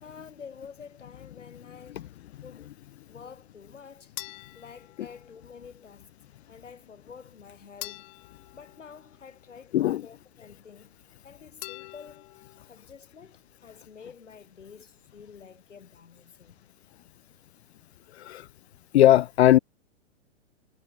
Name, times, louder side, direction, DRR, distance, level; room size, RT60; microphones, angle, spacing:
voice 1, 0.0-2.2 2.4-2.8 3.1-4.1 4.5-6.1 6.5-8.2 8.5-12.4 12.7-16.5, left 6 dB, 85° left, 1.7 m, -49 dB
sound 1, 4.2-5.7 7.8-9.6 11.6-12.7, left 35 dB, 35° left, 1.0 m, -45 dB
voice 2, 18.9-19.6, left 13 dB, 60° left, 0.5 m, -18 dB
figure-of-eight pair, 110°, 36 cm